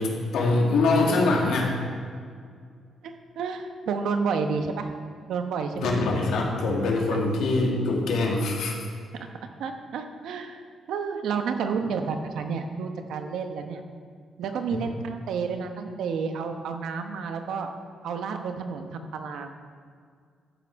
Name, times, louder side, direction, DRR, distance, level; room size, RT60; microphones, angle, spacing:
voice 1, 0.0-1.7 5.8-8.7, left 2 dB, 85° left, -2 dB, 2.4 m, -23 dB
voice 2, 3.0-4.9 5.3-5.9 7.1-7.2 9.6-10.6 10.9-13.8 14.4-17.7 18.0-19.5, right 5 dB, 80° right, 5 dB, 1.1 m, -30 dB
13.5 x 8.7 x 4.8 m, 2.1 s
cardioid pair, 160°, 0 cm